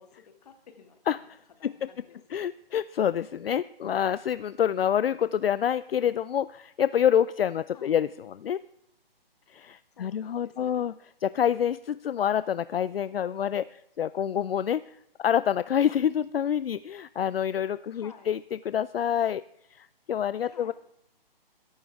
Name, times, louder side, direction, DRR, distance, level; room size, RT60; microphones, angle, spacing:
voice 1, 0.0-1.3 1.6-2.4 7.7-8.0 9.9-10.8 17.9-18.3 20.4-20.7, left 6 dB, 40° left, 6 dB, 2.3 m, -52 dB
voice 2, 2.3-8.6 9.5-10.9 11.2-18.4 18.7-19.4 19.7-20.7, left 9 dB, 70° left, 17 dB, 0.5 m, -27 dB
21.5 x 11.5 x 3.6 m, 0.79 s
hypercardioid pair, 160°, 30 cm